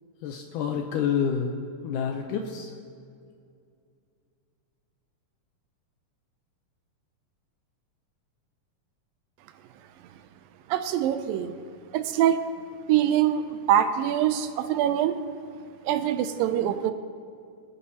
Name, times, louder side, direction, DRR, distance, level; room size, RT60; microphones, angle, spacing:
voice 1, 0.2-1.6 1.8-2.7, left 7 dB, 75° left, 3 dB, 2.1 m, -28 dB
voice 2, 10.7-11.5 11.9-12.4 12.9-13.4 13.7-15.2 15.8-16.9, right 11 dB, 90° right, 10 dB, 2.4 m, -24 dB
24.5 x 9.7 x 2.9 m, 2.4 s
omnidirectional pair, 4.0 m